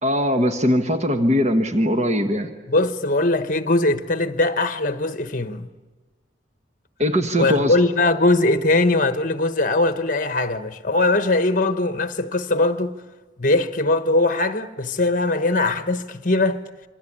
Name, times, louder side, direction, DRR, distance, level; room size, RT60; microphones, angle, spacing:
voice 1, 0.0-2.5 7.0-7.7, equal, 35° right, 1.3 m, -20 dB
voice 2, 2.7-5.7 7.4-13.0 13.4-16.6, left 2 dB, 45° left, 1.1 m, -21 dB
27.0 x 25.0 x 8.7 m
head